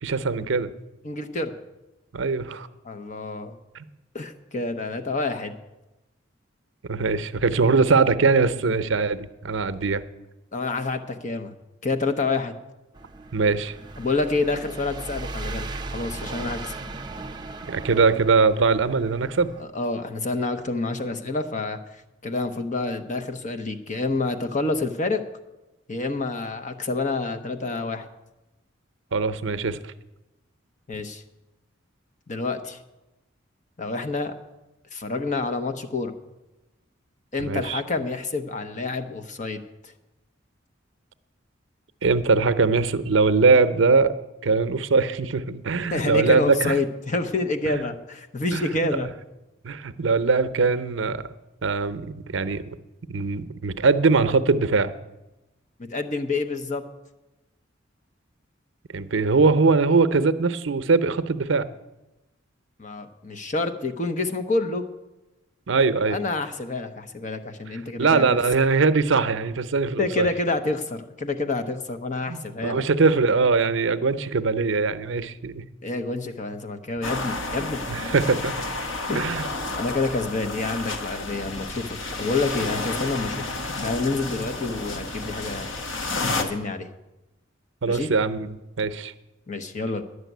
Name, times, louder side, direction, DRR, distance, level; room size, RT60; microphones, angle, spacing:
voice 1, 0.0-0.7 2.1-2.7 3.7-3.9 6.9-10.0 13.3-13.8 17.7-19.5 29.1-29.9 37.4-37.8 42.0-44.1 44.4-46.8 47.7-47.8 48.5-49.0 49.6-51.2 51.6-52.8 53.1-54.9 58.9-61.7 65.7-66.2 68.0-70.3 72.3-75.6 77.9-78.6 79.1-79.5 87.8-89.1, right 4 dB, 75° right, 12 dB, 0.7 m, -21 dB
voice 2, 1.0-1.5 2.8-3.6 4.1-5.6 10.5-11.5 11.8-12.5 14.0-16.8 19.6-21.8 22.2-25.2 25.9-28.1 30.9-31.2 32.3-32.8 33.8-34.3 34.9-36.1 37.3-39.6 45.9-49.1 55.8-56.8 62.8-64.8 66.0-68.2 70.0-72.8 75.8-77.8 79.1-79.3 79.8-83.3 83.8-85.7 86.4-86.9 87.9-88.1 89.5-90.0, left 3 dB, 40° left, 8 dB, 0.9 m, -28 dB
sound 1, 12.9-19.6, right 3 dB, 25° right, 0.6 m, -37 dB
sound 2, 77.0-86.4, left 3 dB, 85° left, 1.3 m, -31 dB
11.0 x 6.7 x 9.3 m, 0.99 s
head